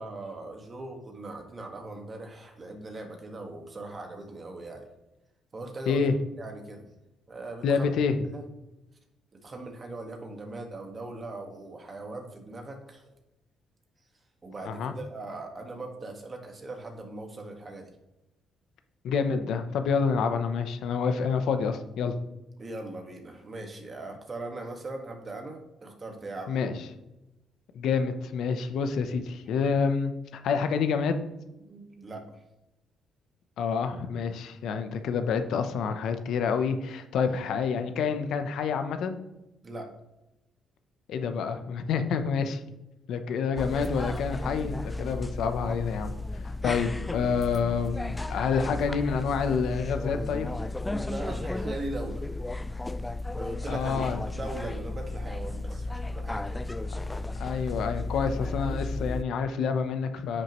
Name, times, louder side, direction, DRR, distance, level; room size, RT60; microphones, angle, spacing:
voice 1, 0.0-4.9 5.5-6.1 6.4-6.9 7.3-7.9 8.3-8.4 9.3-13.1 14.4-17.9 22.6-26.5 31.6-32.2 39.6-39.9 47.1-47.3 50.9-52.3 52.9-53.0 53.3-54.0 54.3-55.9 56.1-56.6, right 2 dB, 35° right, 3 dB, 1.7 m, -40 dB
voice 2, 7.6-8.1 14.6-14.9 19.0-22.1 26.5-26.7 27.7-30.1 30.4-31.1 33.6-39.2 41.1-42.6 43.1-46.1 46.6-50.5 53.7-54.2 57.4-60.4, left 5 dB, 75° left, 8 dB, 0.8 m, -28 dB
sound 1, 43.6-59.2, left 2 dB, 15° left, 0.3 m, -34 dB
9.7 x 6.1 x 3.1 m, 0.98 s
cardioid pair, 90°, 0 cm